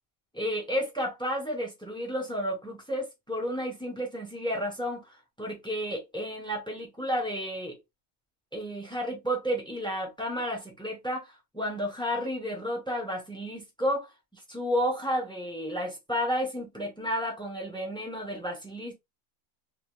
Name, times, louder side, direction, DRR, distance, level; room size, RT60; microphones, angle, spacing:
voice 1, 0.3-7.8 8.5-11.3 11.5-18.9, equal, 5° left, 0.4 m, -32 dB
2.6 x 2.2 x 3.0 m
omnidirectional pair, 1.4 m